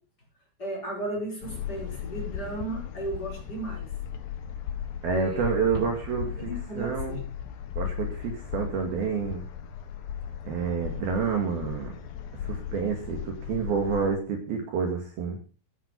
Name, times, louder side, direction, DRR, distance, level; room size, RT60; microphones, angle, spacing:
voice 1, 0.6-3.9 5.1-5.9 6.5-7.2, right 1 dB, 20° left, -1 dB, 5.2 m, -35 dB
sound 1, 1.4-14.1, left 9 dB, 65° left, 2.6 m, -36 dB
voice 2, 5.0-6.5 6.8-7.2 7.8-9.4 10.5-11.9 12.4-15.4, right 6 dB, 55° right, 3 dB, 3.5 m, -28 dB
14.0 x 10.0 x 5.3 m, 0.36 s
omnidirectional pair, 5.8 m